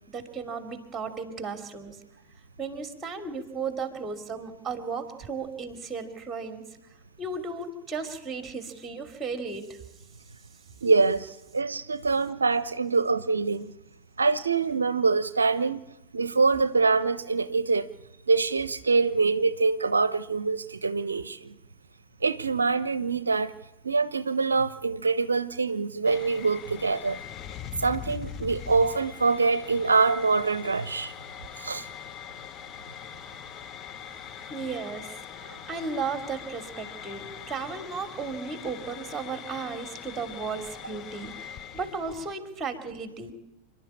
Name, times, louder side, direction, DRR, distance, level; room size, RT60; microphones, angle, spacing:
voice 1, 0.1-2.0 2.6-6.6 7.2-9.8 34.5-43.3, right 4 dB, 15° right, 7 dB, 2.9 m, -35 dB
voice 2, 10.8-13.7 14.2-15.8 16.1-17.9 18.3-21.5 22.2-23.5 23.8-27.2 27.8-31.1 31.6-31.9, right 4 dB, 75° right, 15 dB, 0.6 m, -25 dB
sound 1, 26.0-42.3, left 9 dB, 30° left, 0.8 m, -42 dB
28.5 x 11.5 x 8.7 m, 0.96 s
figure-of-eight pair, 90°, 0 cm